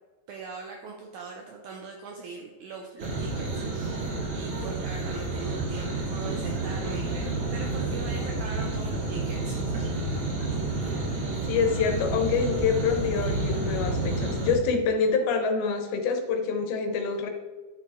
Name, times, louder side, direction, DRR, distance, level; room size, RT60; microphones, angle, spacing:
voice 1, 0.3-4.1 4.3-9.9, right 4 dB, 80° right, 2 dB, 1.7 m, -41 dB
sound 1, 3.0-14.5, right 2 dB, 40° right, 2.1 m, -30 dB
voice 2, 11.4-17.3, left 5 dB, 80° left, 5 dB, 2.9 m, -26 dB
10.5 x 6.4 x 3.6 m, 1.3 s
omnidirectional pair, 4.3 m